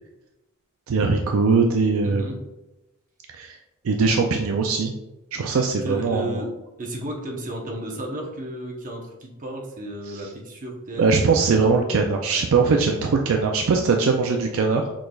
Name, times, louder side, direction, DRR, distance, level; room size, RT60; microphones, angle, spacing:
voice 1, 0.9-2.3 3.3-3.6 3.8-4.9 5.3-6.4 10.1-10.2 11.0-14.8, right 4 dB, 70° right, 3 dB, 0.4 m, -21 dB
voice 2, 2.0-2.4 5.8-6.5 6.8-11.3, right 1 dB, 40° right, 0 dB, 0.8 m, -33 dB
6.1 x 3.3 x 2.3 m, 0.99 s
head